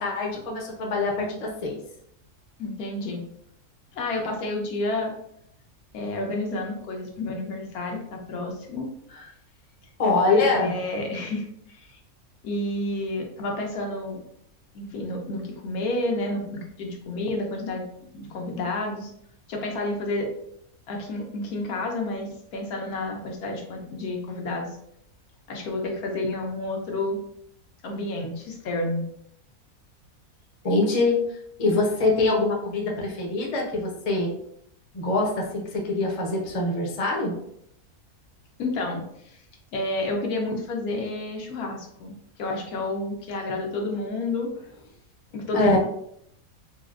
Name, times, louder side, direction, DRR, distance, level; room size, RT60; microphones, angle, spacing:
voice 1, 0.0-1.8 9.1-9.3 10.0-10.7 30.6-31.2 31.6-34.3 34.9-37.4 45.5-45.8, left 3 dB, 40° left, -1 dB, 0.5 m, -24 dB
voice 2, 2.6-3.2 3.9-5.1 5.9-8.9 10.3-12.0 12.4-14.2 14.7-17.8 18.1-19.1 19.5-20.3 20.9-24.7 25.5-27.2 27.8-29.0 38.6-39.4 39.7-42.1 42.4-44.5 45.3-45.8, left 2 dB, 85° left, 1 dB, 1.2 m, -30 dB
4.2 x 2.1 x 2.4 m, 0.71 s
omnidirectional pair, 1.5 m